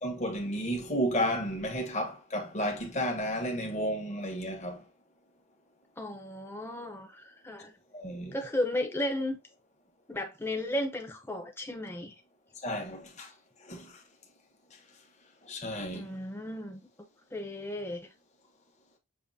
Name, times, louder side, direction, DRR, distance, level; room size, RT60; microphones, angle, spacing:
voice 1, 0.0-4.9 7.9-8.3 12.6-13.3 13.6-14.0 15.4-16.1, equal, 35° left, 1.2 m, -32 dB
voice 2, 6.0-7.7 8.3-9.4 10.1-12.1 15.9-16.8 17.3-18.1, left 1 dB, 10° left, 0.9 m, -34 dB
6.8 x 2.8 x 2.7 m
head